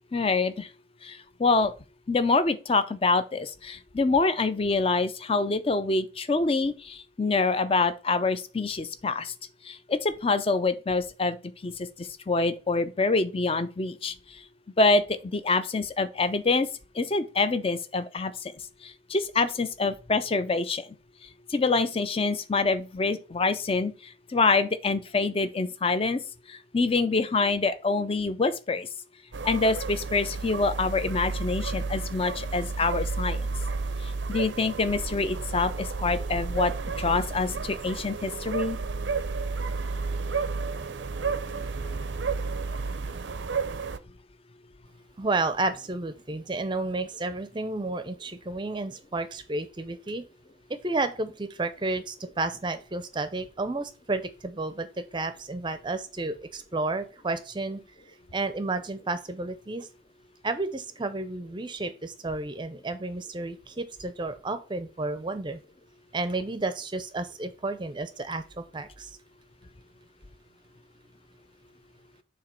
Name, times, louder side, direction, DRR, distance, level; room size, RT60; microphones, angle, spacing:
voice 1, 0.1-0.7 1.0-1.7 2.1-9.3 9.6-11.4 11.6-14.4 14.8-16.7 16.9-18.5 18.8-21.0 21.2-26.2 26.5-28.9 29.4-33.5 34.0-38.8, left 3 dB, 30° left, 0.5 m, -26 dB
sound 1, 29.3-44.0, right 4 dB, 70° right, 0.5 m, -32 dB
voice 2, 45.2-50.3 50.8-57.8 58.3-59.9 60.4-65.6 66.1-69.2, right 2 dB, 25° right, 0.5 m, -31 dB
7.2 x 2.9 x 5.3 m
head